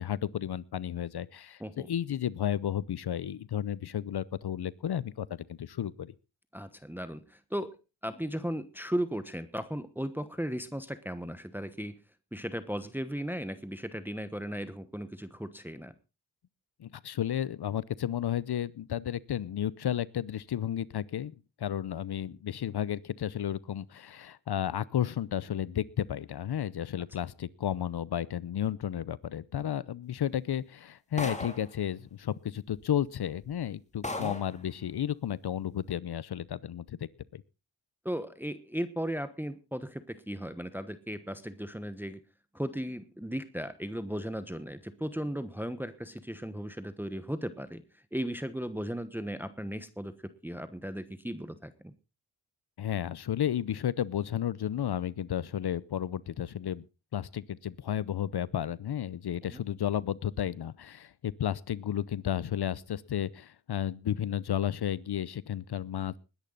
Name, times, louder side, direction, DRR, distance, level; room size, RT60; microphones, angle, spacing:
voice 1, 0.0-6.1 16.8-21.3 21.6-37.4 52.8-56.8 57.1-66.2, left 10 dB, 65° left, 20 dB, 0.7 m, -33 dB
voice 2, 6.5-7.8 8.0-12.0 12.3-15.9 34.1-34.3 38.0-42.2 42.5-47.8 48.1-50.1 50.4-51.9 59.5-59.6, equal, 5° right, 12 dB, 1.1 m, -36 dB
sound 1, 31.2-31.7 32.8-32.9 33.4-33.5 34.0-34.6, left 2 dB, 15° left, 2.8 m, -36 dB
20.5 x 10.5 x 3.9 m, 0.30 s
cardioid pair, 75°, 43 cm